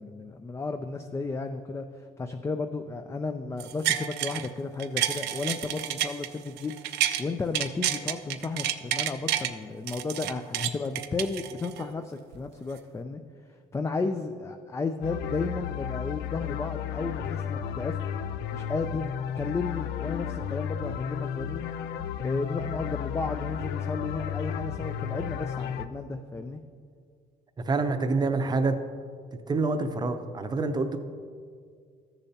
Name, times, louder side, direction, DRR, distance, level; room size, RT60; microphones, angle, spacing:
voice 1, 0.0-13.2 13.7-18.0 18.5-19.1 19.4-21.6 22.2-26.6, left 3 dB, 15° left, 6 dB, 0.4 m, -33 dB
sound 1, 3.6-4.5 4.8-7.2 7.5-9.5 9.9-11.9 12.3-12.4, right 12 dB, 80° right, 0.5 m, -29 dB
sound 2, 15.0-25.9, left 8 dB, 80° left, 0.5 m, -33 dB
voice 2, 27.6-28.8 29.5-31.0, right 3 dB, 25° right, 8 dB, 0.7 m, -26 dB
13.5 x 6.8 x 2.8 m, 2.1 s
cardioid pair, 110°, 17 cm